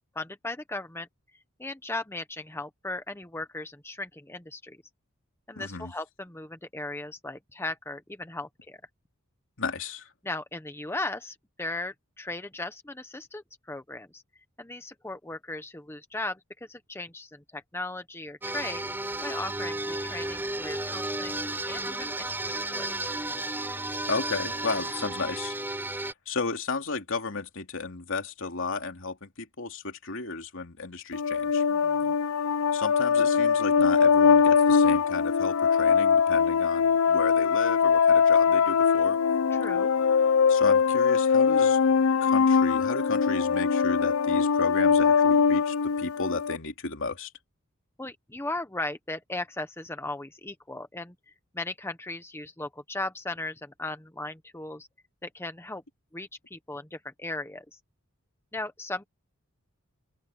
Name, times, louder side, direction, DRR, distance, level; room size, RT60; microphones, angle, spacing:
voice 1, 0.1-4.8 5.5-8.8 10.2-14.2 14.6-18.9 19.2-22.9 31.7-32.1 39.5-39.9 48.0-54.9 55.2-55.8 56.1-57.8 58.5-59.0, left 2 dB, 10° left, 1.0 m, -37 dB
voice 2, 5.5-5.9 9.6-10.1 24.1-31.6 32.7-39.2 40.5-41.8 42.2-47.3, left 3 dB, 65° left, 3.1 m, -33 dB
sound 1, 18.4-26.1, right 2 dB, 10° right, 4.3 m, -33 dB
sound 2, 31.1-46.6, left 6 dB, 85° left, 0.5 m, -22 dB
head